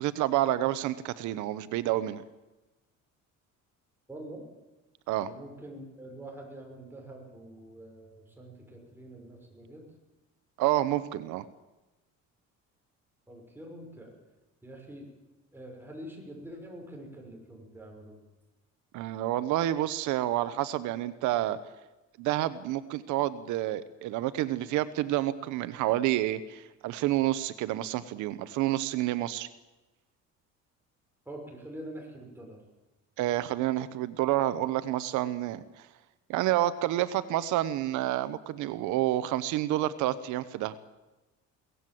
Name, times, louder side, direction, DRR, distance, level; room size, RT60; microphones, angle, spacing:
voice 1, 0.0-2.2 5.1-5.3 10.6-11.4 18.9-21.6 22.2-29.5 33.2-35.9 36.3-40.8, right 14 dB, 85° right, 14 dB, 1.0 m, -29 dB
voice 2, 4.1-4.4 5.2-9.8 13.3-14.1 14.6-15.1 15.5-18.2 31.3-32.6, right 1 dB, 5° right, 1 dB, 5.9 m, -45 dB
23.0 x 18.0 x 7.7 m, 1.1 s
cardioid pair, 135°, 29 cm